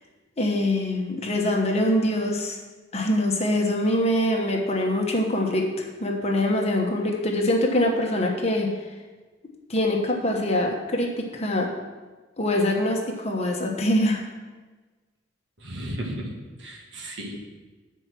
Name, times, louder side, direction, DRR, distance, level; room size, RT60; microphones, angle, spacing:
voice 1, 0.4-2.6 2.9-8.7 9.7-11.7 12.4-14.2, left 1 dB, 35° left, 1 dB, 1.1 m, -24 dB
voice 2, 15.6-16.3 16.6-17.5, right 1 dB, 70° right, 0 dB, 1.6 m, -34 dB
9.8 x 4.6 x 6.1 m, 1.3 s
head